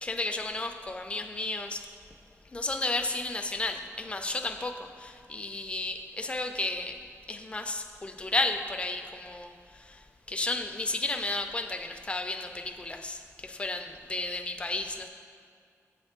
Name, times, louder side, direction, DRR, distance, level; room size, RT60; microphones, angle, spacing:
voice 1, 0.0-1.9 2.4-7.0 7.3-15.1, left 2 dB, 20° left, 6 dB, 0.3 m, -33 dB
7.6 x 3.3 x 4.3 m, 2.2 s
wide cardioid pair, 125°, 5 cm